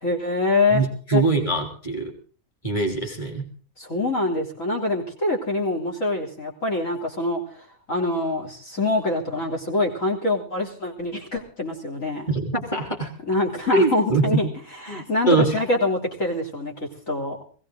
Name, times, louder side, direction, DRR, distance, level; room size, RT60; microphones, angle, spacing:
voice 1, 0.0-0.8 1.1-1.2 3.8-7.4 7.9-12.3 13.2-14.5 14.9-17.4, left 2 dB, 70° left, 2 dB, 3.8 m, -25 dB
voice 2, 0.7-2.1 2.6-3.5 12.3-13.1 13.7-14.4 14.9-15.6, right 3 dB, 20° left, 2 dB, 3.1 m, -23 dB
20.5 x 16.5 x 3.8 m, 0.41 s
omnidirectional pair, 1.5 m